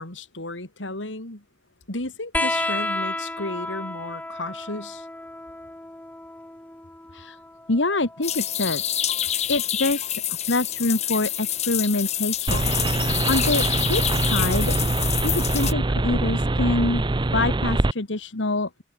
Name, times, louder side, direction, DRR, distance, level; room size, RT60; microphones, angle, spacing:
voice 1, 0.0-1.4 1.9-5.1, left 2 dB, 90° left, 4.4 m, -34 dB
sound 1, 2.3-9.4 10.8-11.6 12.9-13.0, left 2 dB, 10° left, 0.9 m, -33 dB
voice 2, 7.7-9.0 9.5-10.2 10.5-14.8 15.2-17.0 17.3-18.7, left 2 dB, 70° left, 1.8 m, -26 dB
sound 2, 8.2-15.7, left 11 dB, 35° left, 0.7 m, -27 dB
sound 3, 12.5-17.9, right 2 dB, 25° right, 0.6 m, -23 dB
head